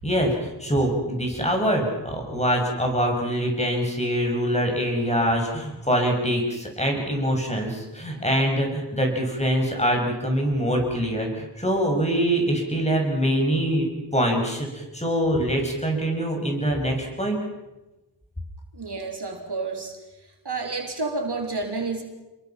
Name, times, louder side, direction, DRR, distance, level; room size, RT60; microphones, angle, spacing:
voice 1, 0.0-13.9 14.1-17.4, equal, 15° left, 1 dB, 6.6 m, -24 dB
voice 2, 18.7-20.0 20.4-22.0, right 3 dB, 60° right, 2 dB, 3.7 m, -30 dB
28.0 x 22.0 x 5.9 m, 1.0 s
wide cardioid pair, 75°, 45 cm